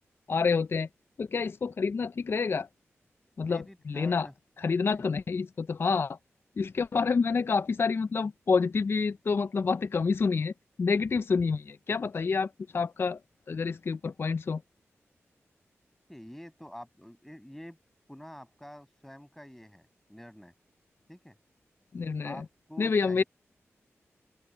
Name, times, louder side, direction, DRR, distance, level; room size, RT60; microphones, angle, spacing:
voice 1, 0.3-0.9 1.2-2.7 3.4-4.3 4.6-6.2 6.6-10.5 10.8-13.2 13.5-14.6 21.9-22.4 22.8-23.2, left 5 dB, 50° left, 0.4 m, -28 dB
voice 2, 3.4-4.3 4.9-5.0 16.1-17.8 18.1-20.5 21.1-21.4 22.2-23.3, equal, 5° left, 5.8 m, -48 dB
open air
cardioid pair, 70°, 5 cm